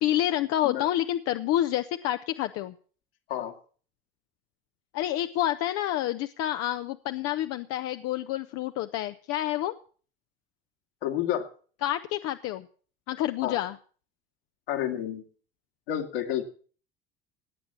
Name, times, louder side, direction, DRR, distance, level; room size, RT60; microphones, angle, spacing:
voice 1, 0.0-2.7 4.9-9.7 11.8-12.7 13.1-13.8, left 13 dB, 55° left, 9 dB, 0.9 m, -28 dB
voice 2, 11.0-11.5 13.4-13.6 14.7-15.2 15.9-16.5, left 11 dB, 75° left, 2 dB, 2.7 m, -29 dB
18.5 x 8.8 x 7.3 m, 0.43 s
hypercardioid pair, 70°, 29 cm